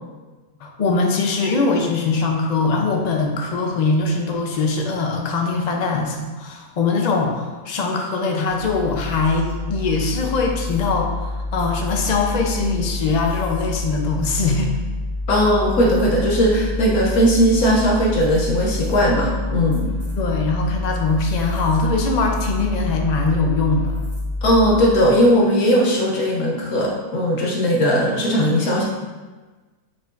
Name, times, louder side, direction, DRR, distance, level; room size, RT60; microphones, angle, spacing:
voice 1, 0.6-14.7 20.2-24.0, left 3 dB, 45° left, 2 dB, 0.5 m, -22 dB
mysterious electricity, 8.5-25.0, left 2 dB, 50° right, 2.1 m, -27 dB
voice 2, 15.3-19.9 24.4-28.8, equal, 70° left, -2 dB, 1.3 m, -18 dB
6.9 x 5.5 x 2.6 m, 1.3 s
omnidirectional pair, 1.6 m